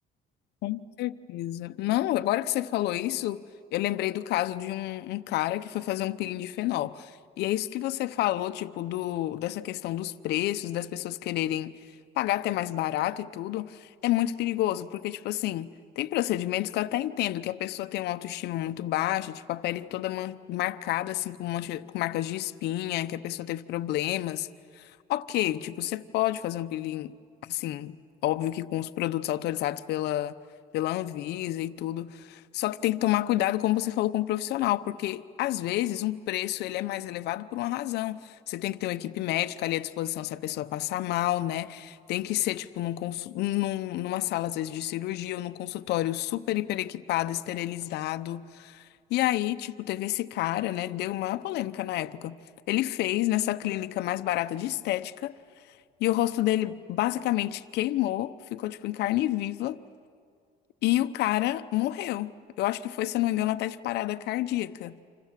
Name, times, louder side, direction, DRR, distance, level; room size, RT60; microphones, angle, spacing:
voice 1, 0.6-3.4 3.7-11.7 12.2-24.5 24.8-27.1 27.4-28.0 28.2-30.4 30.7-48.8 49.1-52.4 52.7-55.3 56.0-59.8 60.8-65.0, left 14 dB, 80° left, 0.9 m, -29 dB
29.0 x 26.5 x 7.5 m
cardioid pair, 110°, 17 cm